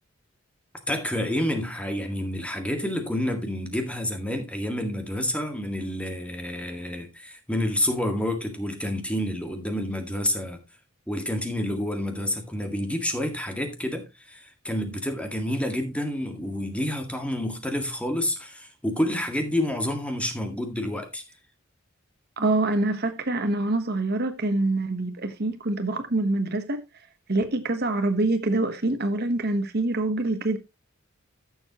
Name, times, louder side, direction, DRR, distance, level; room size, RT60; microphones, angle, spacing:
voice 1, 0.9-10.6 11.1-21.2, left 1 dB, 5° left, 1.8 m, -29 dB
voice 2, 22.4-26.8 27.3-30.6, right 2 dB, 50° right, 1.2 m, -25 dB
13.5 x 7.1 x 3.0 m
head